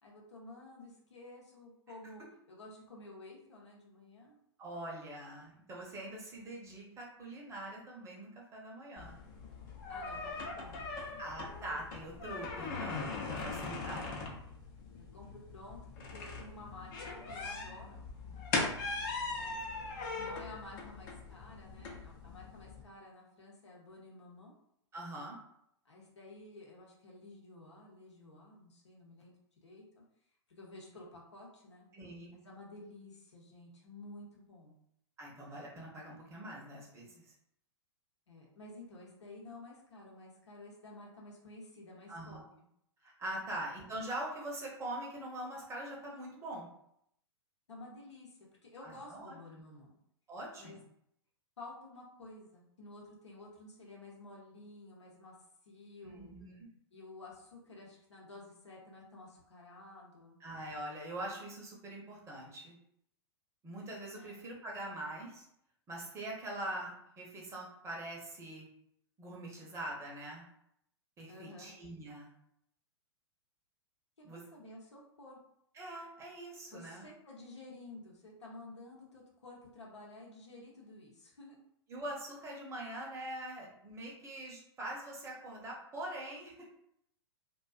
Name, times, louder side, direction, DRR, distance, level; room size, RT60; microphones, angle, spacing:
voice 1, 0.0-4.4 9.9-11.1 14.9-18.1 19.3-19.6 20.2-24.5 25.8-29.3 29.6-30.0 30.5-31.9 32.3-34.8 38.3-42.4 43.4-43.6 47.7-49.9 50.6-50.8 51.6-55.4 55.7-56.3 56.9-60.4 64.1-64.4 71.3-71.7 74.2-75.4 76.7-81.6, left 2 dB, 80° left, -2 dB, 0.8 m, -52 dB
voice 2, 4.6-9.2 11.2-14.4 24.9-25.4 31.9-32.4 35.2-37.3 42.1-42.4 43.0-46.7 48.8-49.4 50.3-50.8 56.1-56.7 60.4-62.8 63.6-65.4 65.9-68.7 69.2-70.5 71.2-72.3 74.2-74.4 75.7-77.0 81.9-86.5, right 1 dB, 20° right, -2 dB, 0.7 m, -43 dB
sound 1, 9.0-22.8, left 3 dB, 45° left, 0.6 m, -40 dB
2.4 x 2.2 x 2.3 m, 0.73 s
figure-of-eight pair, 105°, 15 cm